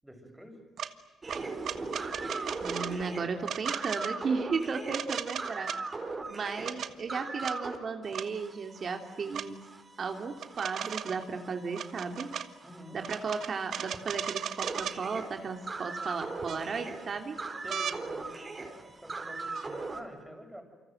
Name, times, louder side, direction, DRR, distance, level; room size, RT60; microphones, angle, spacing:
voice 1, 0.0-0.6 12.6-13.0 17.6-18.5 19.0-20.6, equal, 5° right, 4 dB, 7.4 m, -47 dB
sound 1, 0.8-0.9 1.3-2.9 3.4-4.1 4.9-5.8 6.4-6.9 7.4-7.6 8.1-8.3 9.3-9.5 10.4-11.2 11.7-12.5 13.0-15.0 16.0-16.1 16.5-17.0 17.7-18.0 19.5-19.7, right 8 dB, 65° right, 1.5 m, -36 dB
sound 2, 1.2-7.8 8.0-20.0, right 3 dB, 30° right, 5.0 m, -40 dB
voice 2, 2.6-5.7 6.3-9.6 10.0-12.3 12.9-17.4, right 5 dB, 45° right, 5 dB, 2.9 m, -35 dB
28.5 x 25.5 x 7.9 m, 1.3 s
cardioid pair, 90°, 0 cm